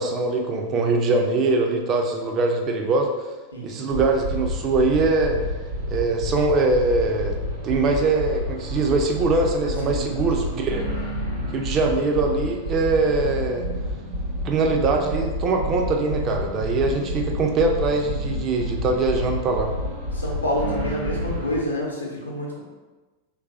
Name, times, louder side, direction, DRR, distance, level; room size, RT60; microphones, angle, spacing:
voice 1, 0.0-3.1 3.6-5.4 5.9-7.3 7.6-10.8 11.5-13.7 14.4-19.7, right 3 dB, 30° right, 2 dB, 0.3 m, -22 dB
voice 2, 3.5-3.9 9.8-10.2 10.5-10.6 20.1-22.6, equal, 80° left, -2 dB, 0.6 m, -28 dB
sound 1, 3.9-21.6, equal, 55° right, 0.8 m, -29 dB
3.1 x 2.3 x 2.5 m, 1.2 s
figure-of-eight pair, 90°, 0 cm